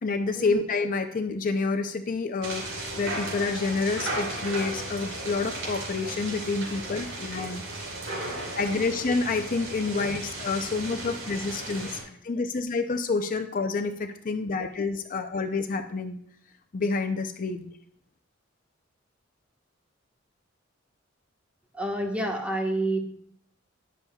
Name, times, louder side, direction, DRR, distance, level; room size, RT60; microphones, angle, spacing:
voice 1, 0.0-7.6 8.6-16.2 16.7-17.7, left 4 dB, 45° left, 7 dB, 0.5 m, -28 dB
sound 1, 2.4-12.0, right 2 dB, 80° right, 4.1 m, -35 dB
voice 2, 21.8-23.0, right 1 dB, 5° right, 1 dB, 1.3 m, -28 dB
19.5 x 7.1 x 2.3 m, 0.67 s
head